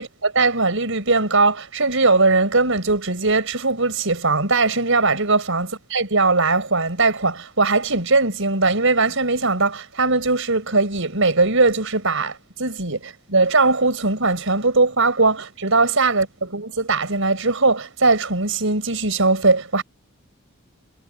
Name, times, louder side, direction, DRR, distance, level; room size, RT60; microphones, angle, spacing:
voice 1, 0.0-19.8, right 3 dB, 65° right, 7.1 m, -20 dB
head